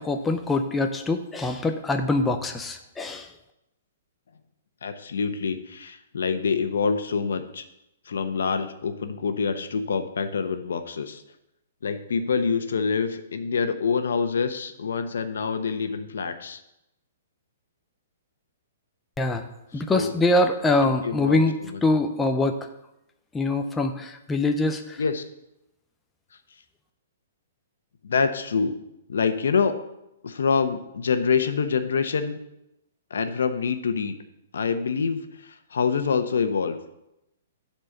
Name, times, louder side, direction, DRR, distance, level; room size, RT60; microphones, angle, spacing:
voice 1, 0.0-3.3 19.2-19.5 19.7-22.7 23.3-25.0, left 2 dB, 5° left, 5 dB, 0.4 m, -24 dB
voice 2, 4.8-7.6 8.1-11.2 11.8-16.6 19.9-20.1 21.0-21.4 25.0-25.2 28.0-28.7 29.1-29.8 30.2-32.4 33.1-34.1 34.5-36.8, left 5 dB, 90° left, 8 dB, 1.0 m, -26 dB
11.0 x 4.4 x 6.6 m, 0.87 s
hypercardioid pair, 175°, 0 cm